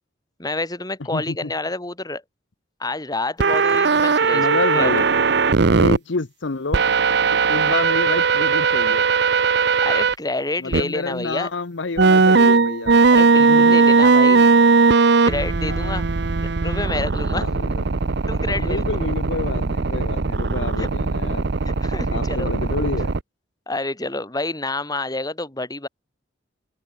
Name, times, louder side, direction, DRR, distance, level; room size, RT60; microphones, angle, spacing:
voice 1, 0.4-2.2 2.8-4.5 4.7-4.9 9.8-11.5 13.1-14.5 15.2-16.0 16.4-17.4 18.3-18.8 20.8-20.9 21.8-22.5 23.7-25.9, left 2 dB, 20° left, 3.2 m, -28 dB
voice 2, 1.1-1.5 4.3-5.1 5.8-6.8 7.3-9.0 10.6-13.0 13.4-13.8 15.7-16.0 17.3-17.8 18.6-21.5 22.1-23.2, left 3 dB, 75° left, 1.0 m, -28 dB
sound 1, 3.4-6.0 6.7-10.1 10.7-10.8 12.0-23.2, right 4 dB, 65° right, 0.8 m, -18 dB
open air
head